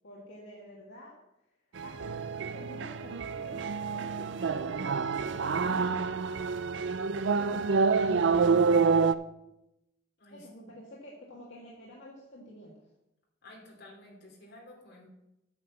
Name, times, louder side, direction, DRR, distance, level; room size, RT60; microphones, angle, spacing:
voice 1, 0.0-1.2 1.8-6.4 7.1-8.7 10.3-12.9, equal, 70° left, -5 dB, 2.0 m, -49 dB
sound 1, 1.8-9.1, right 5 dB, 65° right, 0.4 m, -27 dB
voice 2, 13.4-15.1, left 1 dB, 55° left, -2 dB, 3.1 m, -52 dB
8.7 x 5.8 x 7.3 m, 0.88 s
head